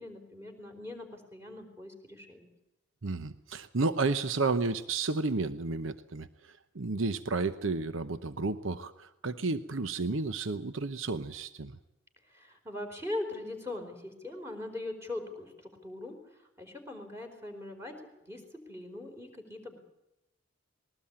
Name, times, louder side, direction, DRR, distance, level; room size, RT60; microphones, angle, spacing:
voice 1, 0.0-2.5 12.3-16.2 16.6-17.9 18.3-18.4 18.7-19.8, left 2 dB, 15° right, 3 dB, 4.4 m, -41 dB
voice 2, 3.0-11.7, right 3 dB, 70° right, 11 dB, 0.9 m, -32 dB
21.0 x 18.5 x 8.8 m, 0.91 s
head